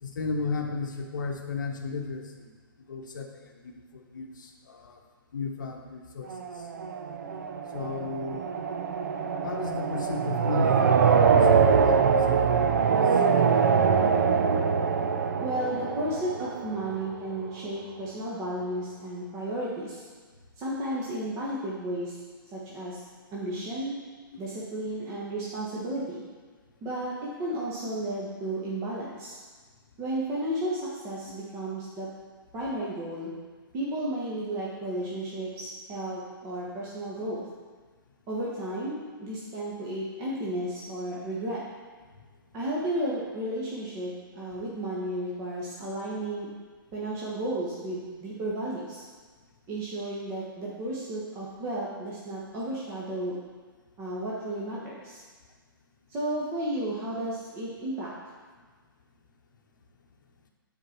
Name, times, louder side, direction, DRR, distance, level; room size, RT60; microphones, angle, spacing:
voice 1, 0.0-2.5 2.9-3.3 3.6-5.0 5.3-6.6 7.7-8.4 9.4-12.8 13.1-13.2, left 4 dB, 55° left, 2 dB, 1.0 m, -35 dB
sound 1, 6.3-17.1, right 6 dB, 45° right, 0.6 m, -24 dB
voice 2, 15.4-20.0 20.6-22.2 22.5-23.0 23.3-23.9 24.4-26.3 26.8-29.4 30.0-32.1 32.5-33.3 33.7-37.4 38.3-41.6 42.5-46.5 46.9-49.0 49.7-53.3 54.0-55.2 56.1-58.1, right 1 dB, 20° right, -6 dB, 1.3 m, -33 dB
9.5 x 4.6 x 4.5 m, 1.4 s
figure-of-eight pair, 120°, 12 cm